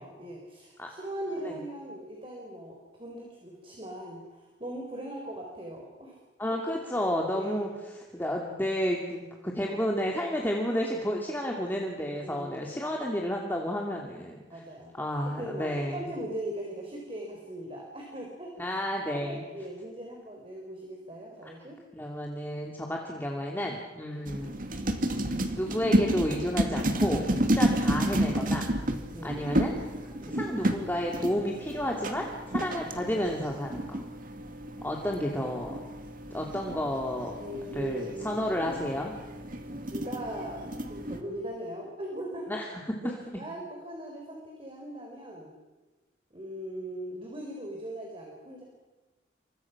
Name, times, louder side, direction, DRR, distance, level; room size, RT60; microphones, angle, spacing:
voice 1, 0.0-6.2 6.5-6.6 7.3-7.7 9.6-9.8 12.0-12.6 14.5-14.9 15.4-18.8 19.1-21.8 24.1-24.3 27.6-27.8 29.1-29.5 30.2-30.5 32.8-32.9 37.4-38.5 39.7-42.5 43.0-45.5 46.3-48.6, right 1 dB, 30° right, 0 dB, 4.4 m, -40 dB
voice 2, 6.4-7.7 8.1-14.6 14.9-16.1 18.6-19.5 21.4-21.5 21.9-24.6 25.0-27.3 27.5-28.7 29.2-29.8 30.3-34.0 34.8-35.8 36.3-37.4 37.7-39.1 42.5-43.1, equal, 10° left, -1 dB, 2.5 m, -31 dB
sound 1, 24.3-41.2, right 1 dB, 45° right, 2.4 m, -31 dB
29.0 x 25.5 x 6.0 m, 1.2 s
head